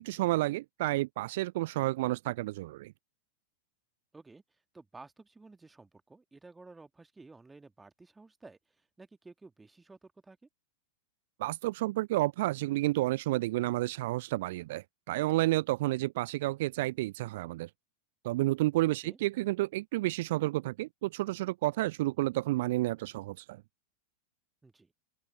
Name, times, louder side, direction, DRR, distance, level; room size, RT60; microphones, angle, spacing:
voice 1, 0.0-2.9 11.4-17.7 18.2-23.6, right 18 dB, 50° right, 0.5 m, -30 dB
voice 2, 4.1-10.5 19.0-19.2 24.6-24.9, right 3 dB, 10° right, 1.9 m, -54 dB
open air
figure-of-eight pair, 90°, 0 cm